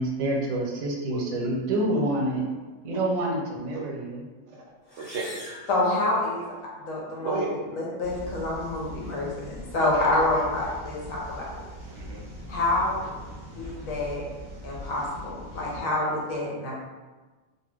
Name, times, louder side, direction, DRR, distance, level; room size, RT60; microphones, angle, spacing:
voice 1, 0.0-2.5 2.8-4.2, right 1 dB, 90° right, 0 dB, 1.1 m, -27 dB
voice 2, 1.1-1.5 1.9-2.0 3.7-3.8 4.5-4.6 5.0-5.7 7.2-7.6 9.8-10.5 11.9-12.3 15.8-16.1, right 3 dB, 65° right, -1 dB, 0.8 m, -34 dB
sound 1, 4.8-6.7, left 1 dB, 55° left, 0.4 m, -44 dB
voice 3, 5.7-6.4 6.8-7.4 7.8-11.6 12.5-13.1 13.6-14.2 14.6-16.7, left 2 dB, 75° left, -3 dB, 1.1 m, -27 dB
sound 2, 8.0-15.8, equal, 25° right, 0.9 m, -41 dB
2.8 x 2.3 x 3.3 m, 1.3 s
omnidirectional pair, 1.4 m